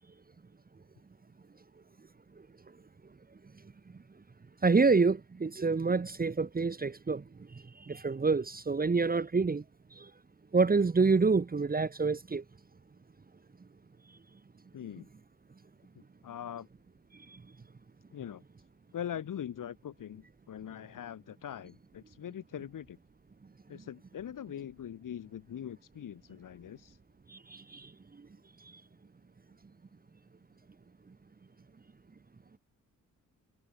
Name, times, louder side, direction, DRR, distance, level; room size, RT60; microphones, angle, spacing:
voice 1, 4.6-7.2 7.8-9.6 10.0-10.1 10.5-12.4 27.3-27.9, right 4 dB, 30° right, 1.2 m, -27 dB
voice 2, 14.7-15.1 16.2-16.7 18.1-18.4 18.9-23.0 23.7-27.0, left 9 dB, 85° left, 1.8 m, -42 dB
wide cardioid pair, 115°, 31 cm